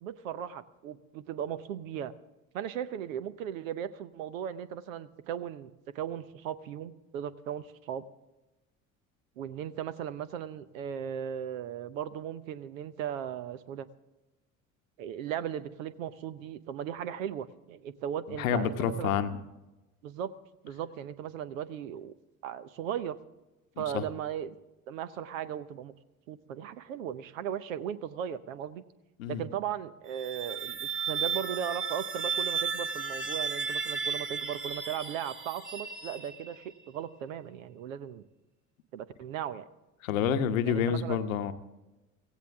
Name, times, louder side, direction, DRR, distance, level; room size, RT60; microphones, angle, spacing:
voice 1, 0.0-2.1 2.5-8.0 9.4-13.9 15.0-19.2 20.0-20.3 20.6-22.1 22.4-23.2 23.8-24.6 24.9-25.9 26.3-28.8 29.3-38.2 38.9-39.7 40.7-41.2, right 9 dB, 70° right, 15 dB, 0.8 m, -37 dB
voice 2, 18.3-19.4 23.8-24.0 29.2-29.4 40.0-41.5, left 8 dB, 70° left, 10 dB, 1.0 m, -28 dB
sound 1, 30.0-36.7, right 6 dB, 30° right, 2.9 m, -34 dB
16.5 x 16.0 x 3.5 m, 1.0 s
figure-of-eight pair, 55°, 42 cm